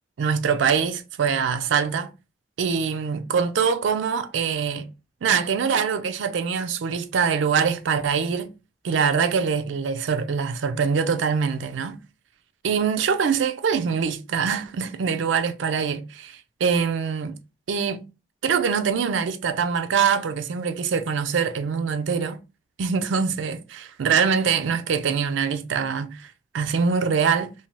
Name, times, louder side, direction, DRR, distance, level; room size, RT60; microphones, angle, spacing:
voice 1, 0.2-2.1 2.6-4.9 5.2-8.5 8.8-12.0 12.6-17.4 17.7-18.0 18.4-22.4 22.8-27.5, right 6 dB, 85° right, 0.4 m, -24 dB
2.6 x 2.2 x 3.0 m
head